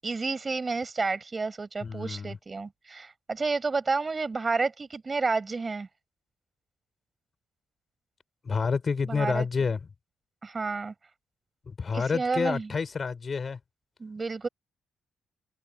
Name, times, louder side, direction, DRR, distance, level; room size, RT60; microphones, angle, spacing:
voice 1, 0.0-5.9 9.0-9.5 10.4-10.9 11.9-12.7 14.0-14.5, right 4 dB, 30° right, 7.6 m, -30 dB
voice 2, 1.8-2.4 8.4-9.8 11.7-13.6, left 5 dB, 40° left, 4.9 m, -29 dB
cardioid pair, 90°, 0 cm